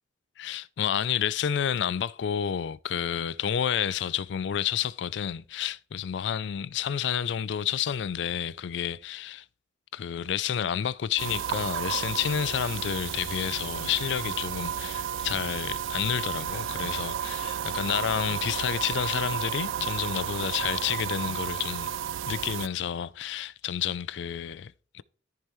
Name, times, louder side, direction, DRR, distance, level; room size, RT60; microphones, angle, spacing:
voice 1, 0.4-9.4 9.9-21.9 22.3-25.0, left 9 dB, 65° left, 0.4 m, -30 dB
sound 1, 11.2-22.7, right 9 dB, 85° right, 0.3 m, -32 dB
13.5 x 5.4 x 3.1 m
head